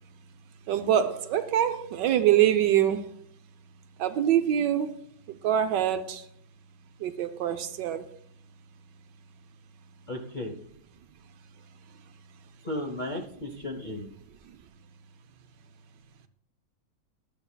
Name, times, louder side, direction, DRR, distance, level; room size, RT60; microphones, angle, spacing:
voice 1, 0.7-3.0 4.0-5.0 5.4-6.2 7.0-8.1, right 10 dB, 75° right, 1.1 m, -24 dB
voice 2, 10.1-10.5 12.6-14.1, left 1 dB, 65° left, 0.4 m, -34 dB
12.5 x 7.9 x 2.2 m
omnidirectional pair, 2.2 m